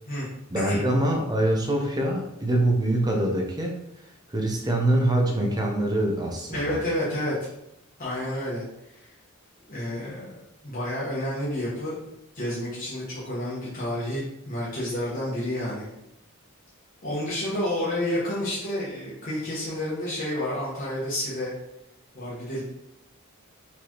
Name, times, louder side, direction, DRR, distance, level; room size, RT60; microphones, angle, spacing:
voice 1, 0.5-3.8 4.3-6.8, right 1 dB, 20° right, 1 dB, 0.7 m, -24 dB
voice 2, 6.5-7.5 8.0-8.6 8.9-9.1 9.7-10.3 10.6-11.9 12.3-15.9 17.0-21.5 22.1-22.6, left 1 dB, 40° left, -9 dB, 1.2 m, -30 dB
4.3 x 3.3 x 2.9 m, 0.82 s
head